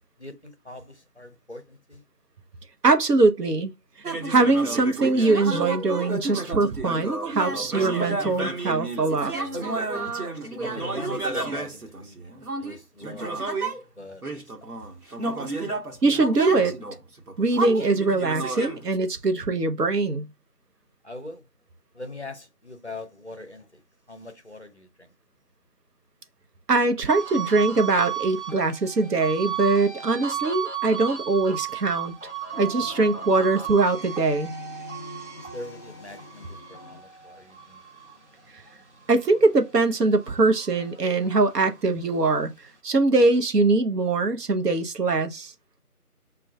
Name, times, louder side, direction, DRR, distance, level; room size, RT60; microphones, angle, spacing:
voice 1, 0.2-2.0 10.6-13.4 14.0-14.5 21.0-21.5 21.9-23.8 24.1-25.1 35.4-37.8, left 2 dB, 50° left, 0.5 m, -42 dB
voice 2, 2.8-3.7 4.3-9.3 16.0-16.8 17.4-20.3 26.7-32.1 32.6-34.5 39.1-42.5 42.8-45.5, right 3 dB, 90° right, 0.7 m, -22 dB
sound 1, 4.0-13.8 14.2-19.0, right 2 dB, 70° right, 1.1 m, -31 dB
sound 2, 27.1-39.7 40.1-41.8, right 10 dB, 50° right, 0.6 m, -35 dB
sound 3, 32.5-37.0, left 3 dB, 30° right, 1.0 m, -44 dB
5.1 x 2.3 x 2.2 m
figure-of-eight pair, 170°, 46 cm